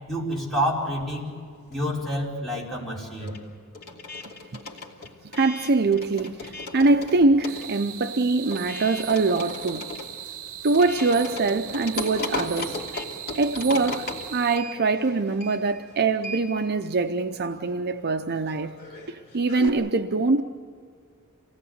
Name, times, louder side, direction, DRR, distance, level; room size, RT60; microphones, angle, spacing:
voice 1, 0.1-1.3 1.7-3.3, equal, ahead, 5.2 m, -28 dB
sound 1, 0.9-2.1 2.4-19.7, left 2 dB, 50° left, 2.9 m, -38 dB
voice 2, 5.3-9.9 10.6-12.8 13.4-18.8 19.1-20.4, right 3 dB, 50° right, 0.7 m, -23 dB
sound 2, 7.5-14.6, right 11 dB, 75° right, 0.9 m, -39 dB
28.0 x 18.5 x 8.0 m
head